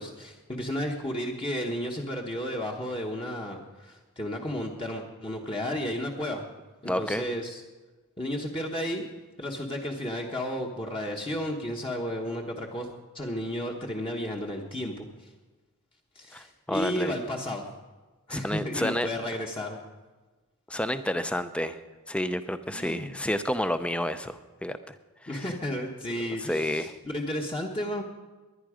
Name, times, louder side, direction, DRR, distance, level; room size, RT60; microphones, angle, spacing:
voice 1, 0.0-6.5 6.8-7.6 8.2-9.0 9.4-12.9 13.1-15.3 16.1-17.6 18.3-19.8 22.7-23.1 25.3-28.0, equal, 25° left, 0 dB, 1.1 m, -33 dB
voice 2, 6.9-7.3 16.3-17.1 18.3-19.1 20.7-21.8 22.1-25.0 25.2-25.4 26.4-26.9, left 1 dB, 5° left, 11 dB, 0.5 m, -30 dB
21.0 x 10.5 x 5.0 m, 1.2 s
head